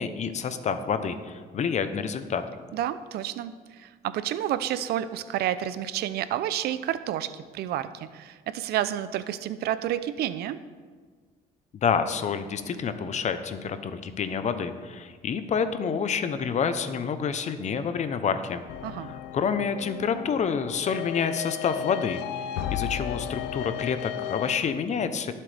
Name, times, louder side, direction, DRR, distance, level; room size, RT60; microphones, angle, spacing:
voice 1, 0.0-2.4 11.8-18.6 19.0-22.2 22.7-25.3, left 6 dB, 45° left, 10 dB, 0.8 m, -28 dB
voice 2, 2.7-10.6 18.8-19.1, right 11 dB, 70° right, 14 dB, 0.6 m, -30 dB
sound 1, 18.7-24.6, left 11 dB, 90° left, 0.6 m, -34 dB
18.0 x 7.5 x 3.4 m, 1.5 s
cardioid pair, 110°, 17 cm